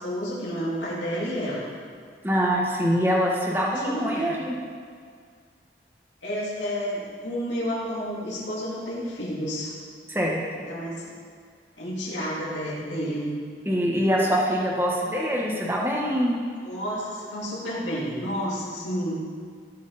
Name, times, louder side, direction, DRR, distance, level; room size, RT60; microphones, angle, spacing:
voice 1, 0.0-1.7 3.8-4.3 6.2-9.7 10.7-11.2 11.8-13.3 16.6-19.2, equal, 85° left, -6 dB, 3.4 m, -30 dB
voice 2, 2.2-4.5 10.1-10.4 13.7-16.4, equal, 10° right, -3 dB, 1.5 m, -24 dB
19.0 x 6.5 x 4.3 m, 2.1 s
head